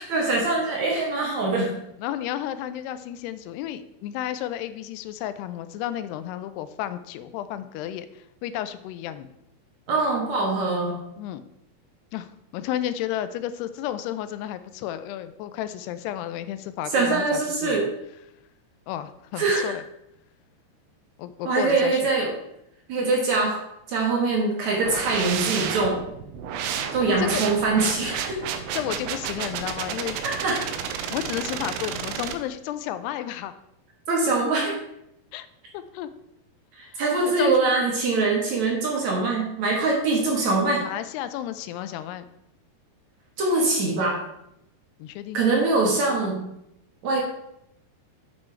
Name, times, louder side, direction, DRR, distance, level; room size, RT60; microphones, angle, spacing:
voice 1, 0.0-1.8 9.9-11.0 16.9-17.9 19.4-19.7 21.4-22.3 22.9-23.6 23.9-26.0 26.9-28.4 30.2-30.6 34.1-34.7 36.8-40.8 43.4-44.2 45.3-46.5 47.0-47.2, right 3 dB, 55° right, -1 dB, 2.3 m, -23 dB
voice 2, 2.0-9.3 11.2-11.4 12.1-12.3 12.5-17.9 18.9-19.8 21.2-22.0 27.0-27.4 28.7-30.2 31.1-33.5 35.3-35.5 35.7-36.1 36.9-37.6 40.8-42.3 45.0-45.4, left 12 dB, 85° left, 12 dB, 2.7 m, -32 dB
sound 1, 24.8-32.3, right 7 dB, 90° right, 2.8 m, -31 dB
7.6 x 7.5 x 4.5 m, 0.81 s
omnidirectional pair, 4.6 m